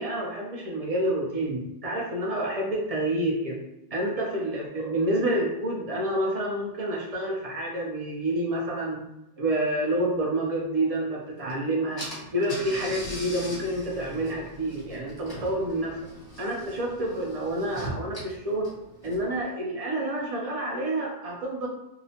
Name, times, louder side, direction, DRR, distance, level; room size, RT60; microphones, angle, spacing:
voice 1, 0.0-3.6 3.9-9.0 9.4-12.1 12.3-16.0 16.4-18.7 19.0-21.7, right 1 dB, 50° right, -2 dB, 0.4 m, -28 dB
Car / Engine, 11.5-11.6 12.0-19.4, equal, 25° left, 0.7 m, -40 dB
2.8 x 2.1 x 2.8 m, 0.93 s
omnidirectional pair, 1.2 m